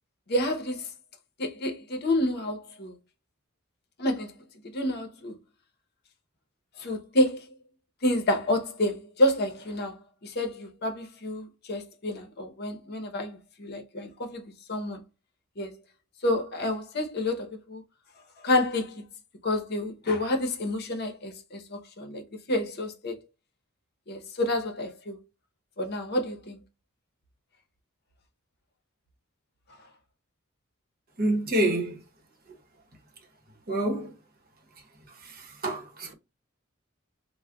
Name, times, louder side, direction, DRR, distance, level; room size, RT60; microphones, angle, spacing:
voice 1, 0.3-0.9 1.4-2.9 4.0-4.3 4.7-5.4 6.8-7.4 8.0-15.0 15.6-15.8 16.2-17.8 18.4-19.1 19.4-22.2 22.5-23.2 24.1-25.2 25.8-26.6, left 1 dB, 50° left, 0.7 m, -29 dB
voice 2, 31.2-32.0 33.7-34.1 35.2-36.1, right 1 dB, 45° right, 0.9 m, -27 dB
4.7 x 2.1 x 2.3 m
head